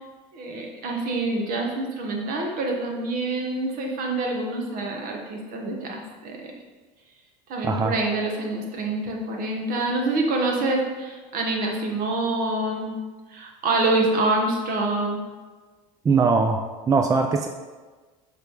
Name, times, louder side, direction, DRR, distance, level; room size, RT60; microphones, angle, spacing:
voice 1, 0.3-6.5 7.5-13.0 13.3-15.2, right 2 dB, 60° right, 1 dB, 1.4 m, -26 dB
voice 2, 7.6-8.0 16.0-17.5, right 4 dB, 20° right, 5 dB, 0.4 m, -21 dB
6.7 x 3.5 x 4.8 m, 1.3 s
supercardioid pair, 100°, 16 cm